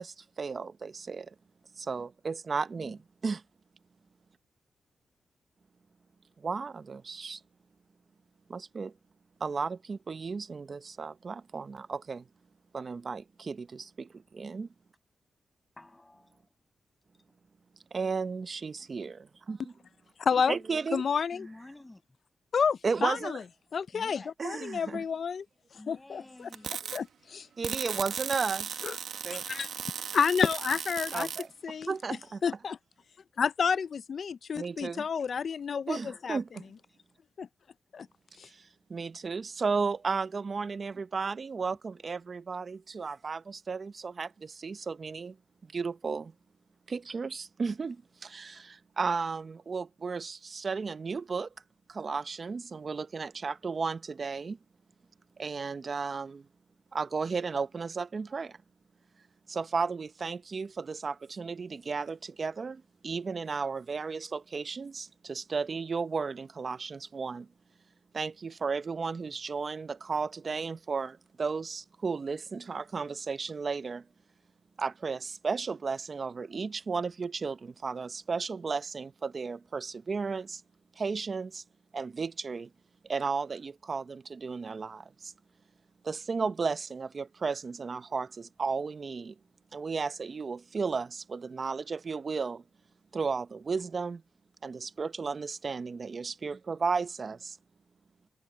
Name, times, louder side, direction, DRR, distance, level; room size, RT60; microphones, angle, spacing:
voice 1, 0.0-1.3 1.8-3.4 6.4-7.4 8.5-8.9 9.4-12.3 12.7-14.7 17.9-19.7 20.5-21.0 22.8-23.4 24.4-25.0 27.6-28.7 29.2-29.4 31.1-31.5 31.9-32.4 34.5-35.1 35.9-36.7 38.4-45.4 45.6-46.3 46.9-51.5 51.9-54.6 55.4-56.5 56.9-58.6 59.5-67.5 68.1-74.1 74.8-80.6 81.0-81.6 81.9-82.7 83.0-85.3 86.0-89.4 89.7-92.6 93.1-94.2 94.6-97.6, right 5 dB, 50° right, 0.9 m, -34 dB
voice 2, 15.8-16.5 21.3-22.0 23.9-24.3 25.8-26.7 36.9-37.0, left 2 dB, 20° left, 6.5 m, -50 dB
voice 3, 20.3-20.6 20.9-21.5 22.5-23.4 23.7-25.4 25.9-26.5 26.9-27.5 28.8-29.0 29.3-29.7 30.1-31.3 31.6-31.9 32.4-32.8 33.4-36.4 37.4-37.5 37.9-38.1 38.4-38.5, left 6 dB, 65° left, 0.5 m, -30 dB
sound 1, 26.5-27.0 27.6-31.5, right 7 dB, 80° right, 1.4 m, -37 dB
cardioid pair, 70°, 0 cm